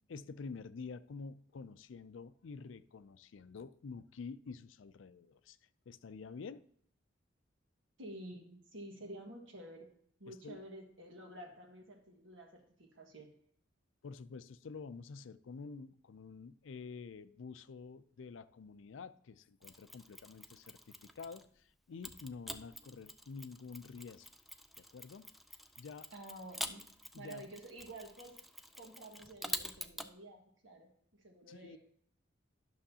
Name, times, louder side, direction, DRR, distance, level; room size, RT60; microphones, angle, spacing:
voice 1, 0.0-5.6 5.9-6.7 10.3-10.6 14.0-24.3 24.8-25.3 25.8-26.1 27.1-27.4 31.5-31.8, left 4 dB, 75° left, 0.4 m, -48 dB
voice 2, 8.0-9.9 10.2-13.3 26.1-26.9 27.1-28.4 28.7-31.8, right 1 dB, 75° right, 1.7 m, -50 dB
Mechanisms, 19.6-21.5 22.0-30.1, equal, ahead, 0.3 m, -47 dB
11.5 x 6.4 x 2.8 m
head